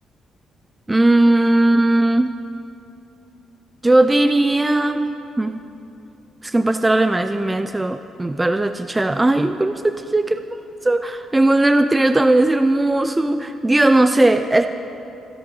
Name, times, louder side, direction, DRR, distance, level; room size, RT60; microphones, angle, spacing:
voice 1, 0.9-2.4 3.8-5.6 6.4-10.4 10.8-14.7, right 2 dB, 15° right, 9 dB, 0.4 m, -17 dB
25.0 x 10.5 x 3.9 m, 2.9 s
cardioid pair, 90°, 0 cm